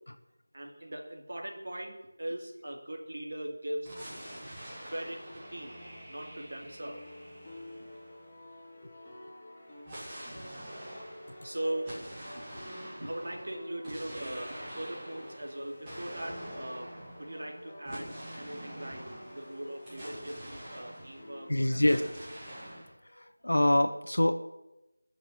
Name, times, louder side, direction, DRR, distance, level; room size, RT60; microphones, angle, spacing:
voice 1, 0.5-3.9 4.8-5.8 6.1-7.0 11.4-12.0 13.0-16.9 17.2-21.8, right 1 dB, 50° right, 1 dB, 3.0 m, -40 dB
sound 1, 3.8-8.6 9.8-21.5 21.8-22.9, equal, 15° right, 2.7 m, -46 dB
sound 2, 5.0-22.5, left 1 dB, 10° left, 2.9 m, -50 dB
voice 2, 21.5-22.0 23.0-24.3, left 1 dB, 65° left, 6 dB, 1.4 m, -26 dB
20.0 x 7.0 x 7.6 m, 0.95 s
figure-of-eight pair, 170°, 0 cm